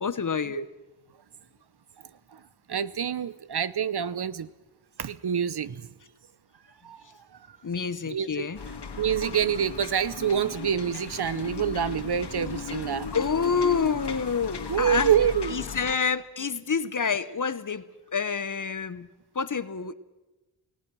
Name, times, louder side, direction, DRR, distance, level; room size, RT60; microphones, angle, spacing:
voice 1, 0.0-0.7 7.6-8.6 13.1-15.1 15.5-19.1 19.3-19.9, left 5 dB, 40° left, 0.9 m, -28 dB
voice 2, 2.0-2.4 2.7-4.5 5.0-5.9 6.8-7.6 8.1-8.5 9.0-13.1 14.7-15.6, right 8 dB, 55° right, 0.7 m, -27 dB
sound 1, 8.5-15.9, left 5 dB, 55° left, 1.9 m, -36 dB
28.5 x 18.0 x 6.2 m
wide cardioid pair, 125°, 48 cm